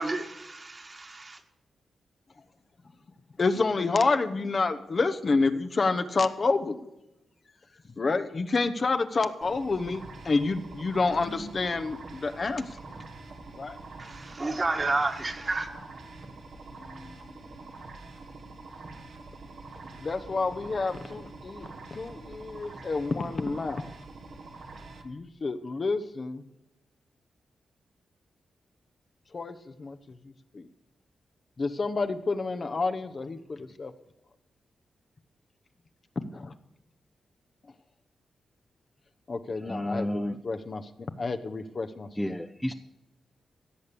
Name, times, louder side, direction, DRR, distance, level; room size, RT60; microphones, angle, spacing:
voice 1, 0.0-1.4 14.0-15.7, right 3 dB, 40° right, 4 dB, 1.9 m, -30 dB
voice 2, 3.4-6.8 8.0-12.7 13.6-13.8 16.8-17.1 20.0-23.9 25.0-26.4 29.3-30.0 30.5-30.7 31.6-33.9 36.3-36.5 39.3-40.8 41.2-42.1, left 3 dB, 50° left, 8 dB, 1.0 m, -29 dB
sound 1, 9.4-25.0, right 3 dB, 70° right, 1.6 m, -45 dB
voice 3, 39.5-40.4 42.2-42.7, left 1 dB, 5° left, 5 dB, 0.7 m, -31 dB
17.0 x 6.7 x 6.8 m, 0.92 s
supercardioid pair, 45°, 0 cm